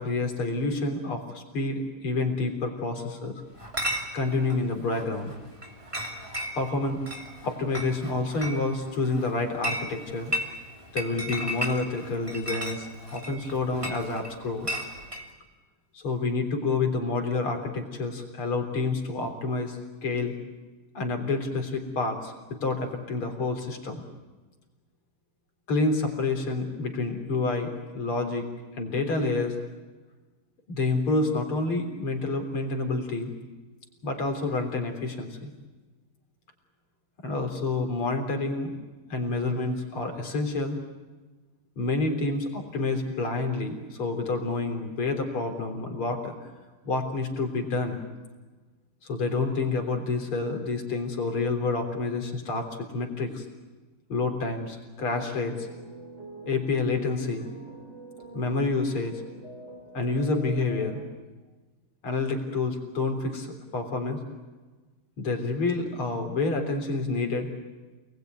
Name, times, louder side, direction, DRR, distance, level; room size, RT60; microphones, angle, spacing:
voice 1, 0.0-3.4 4.1-5.3 6.6-7.0 7.4-10.3 10.9-14.7 15.9-20.3 20.9-24.0 25.7-28.4 28.8-29.6 30.7-33.3 34.0-35.5 37.2-38.7 39.1-40.8 41.8-46.3 46.8-48.0 49.0-53.5 54.1-55.7 56.5-57.5 58.3-59.2 59.9-61.0 62.0-64.2 65.2-67.5, left 3 dB, 80° left, 4 dB, 4.4 m, -28 dB
Chatter / Chink clink, 3.6-15.3, equal, 15° right, 3.0 m, -35 dB
sound 1, 55.0-61.0, right 3 dB, 35° right, 5.0 m, -45 dB
28.5 x 20.5 x 9.4 m, 1.3 s
omnidirectional pair, 2.3 m